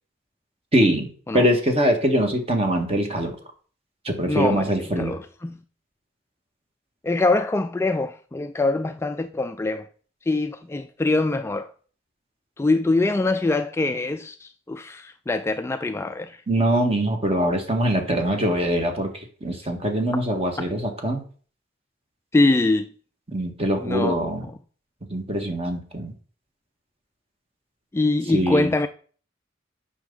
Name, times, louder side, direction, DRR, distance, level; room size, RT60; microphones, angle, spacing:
voice 1, 0.7-1.1 1.3-3.4 4.0-5.1 16.5-19.1 19.4-21.2 23.3-24.4 25.1-26.1 28.3-28.7, right 1 dB, 30° right, 1.6 m, -23 dB
voice 2, 4.3-5.6 7.0-9.9 10.3-11.7 12.6-16.4 22.3-22.9 23.8-24.5 27.9-28.9, left 2 dB, 15° left, 0.3 m, -23 dB
8.8 x 5.8 x 3.9 m
head